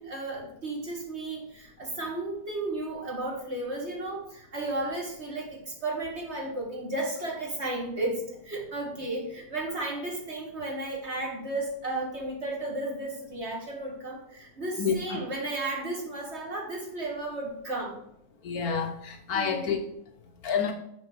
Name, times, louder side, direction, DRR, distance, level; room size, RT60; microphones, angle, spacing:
voice 1, 0.0-18.0 19.3-19.7, right 2 dB, 40° right, -1 dB, 2.0 m, -34 dB
voice 2, 14.8-15.2 18.4-19.8 20.4-20.7, left 6 dB, 65° left, 5 dB, 1.2 m, -28 dB
6.4 x 6.3 x 4.8 m, 0.77 s
omnidirectional pair, 1.9 m